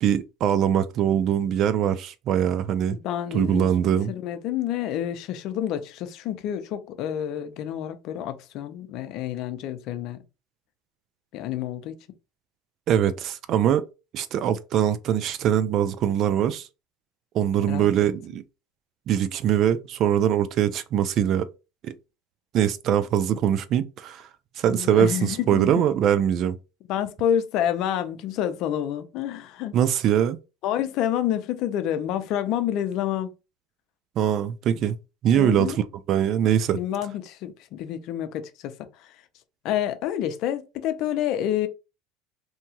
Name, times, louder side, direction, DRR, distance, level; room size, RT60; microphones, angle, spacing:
voice 1, 0.0-3.0 3.3-4.1 12.9-13.8 14.1-16.7 17.3-18.4 19.1-21.5 21.8-21.9 22.5-24.2 24.6-26.6 29.7-30.4 34.2-35.0 35.2-36.8, right 9 dB, 50° right, 0.3 m, -22 dB
voice 2, 2.9-10.2 11.3-11.9 17.6-17.9 24.7-25.8 26.9-29.8 30.6-33.3 35.3-35.8 36.7-38.7 39.0-39.1 39.6-41.7, left 10 dB, 60° left, 0.5 m, -28 dB
2.8 x 2.3 x 2.8 m
supercardioid pair, 110°, 0 cm